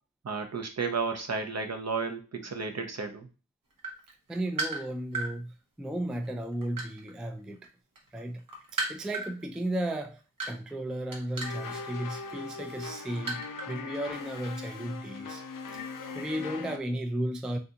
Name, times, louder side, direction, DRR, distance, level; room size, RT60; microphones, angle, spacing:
voice 1, 0.2-3.3, right 4 dB, 50° right, 0.7 m, -33 dB
sound 1, 3.7-5.3 6.0-7.7 8.0-13.8 14.1-14.3, right 3 dB, 75° right, 0.9 m, -36 dB
voice 2, 4.3-7.6 8.1-8.4 8.7-10.2 10.5-15.4 16.1-17.6, right 1 dB, ahead, 0.3 m, -34 dB
sound 2, 11.4-16.8, left 4 dB, 75° left, 0.5 m, -40 dB
3.7 x 2.5 x 2.7 m
wide cardioid pair, 75°, 33 cm